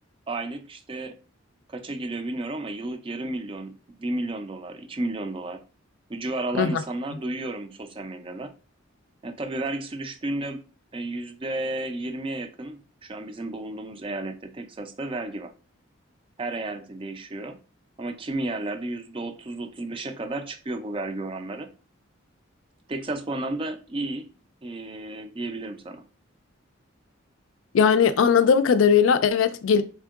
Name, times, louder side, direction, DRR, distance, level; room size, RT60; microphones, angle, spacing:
voice 1, 0.3-1.1 1.7-3.7 4.0-5.6 6.1-8.5 9.2-10.6 10.9-15.5 16.4-17.6 18.0-21.7 22.9-24.3 24.6-26.0, right 2 dB, 25° right, 0.4 m, -32 dB
voice 2, 27.7-29.8, left 6 dB, 70° left, 0.3 m, -19 dB
3.6 x 3.5 x 2.3 m
head